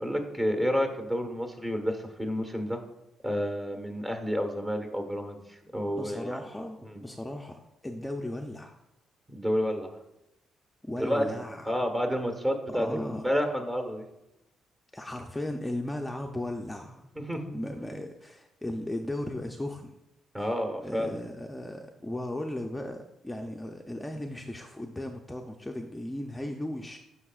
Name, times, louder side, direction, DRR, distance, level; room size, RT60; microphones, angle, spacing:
voice 1, 0.0-2.8 3.2-6.4 6.9-7.0 9.3-9.9 11.0-14.0 17.1-17.6 20.3-21.2, equal, 20° right, 5 dB, 1.3 m, -30 dB
voice 2, 5.9-8.8 10.8-11.6 12.7-13.2 14.9-17.1 17.5-20.0 20.4-20.5 20.8-27.0, left 1 dB, 10° left, 3 dB, 0.5 m, -36 dB
9.6 x 5.7 x 2.4 m, 0.90 s
cardioid pair, 90°, 0 cm